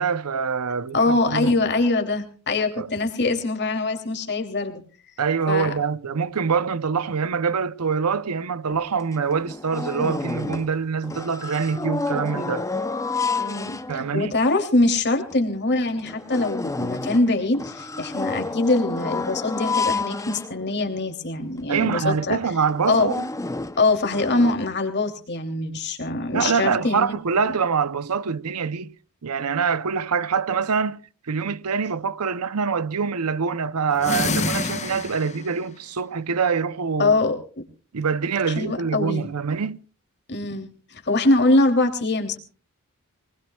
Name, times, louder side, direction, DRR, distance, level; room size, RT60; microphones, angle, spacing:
voice 1, 0.0-1.6 2.8-2.9 5.2-12.7 13.9-14.4 21.7-23.3 26.3-28.9 29.2-31.0 31.3-37.2 37.9-39.8, right 5 dB, 85° right, 0.7 m, -25 dB
voice 2, 0.9-4.8 5.5-5.7 13.4-22.4 22.9-23.1 23.8-27.1 27.4-27.5 37.0-37.6 38.5-39.3 40.3-42.4, left 2 dB, 50° left, 2.9 m, -23 dB
sound 1, 8.7-8.8 9.1-10.8 11.0-14.3 14.8-14.9 15.3-15.4 15.9-21.0 21.6-21.7 22.0-22.2 22.7-24.5, left 3 dB, 15° left, 0.7 m, -30 dB
sound 2, 33.9-35.6, left 4 dB, 30° left, 1.1 m, -27 dB
24.0 x 20.5 x 2.3 m
head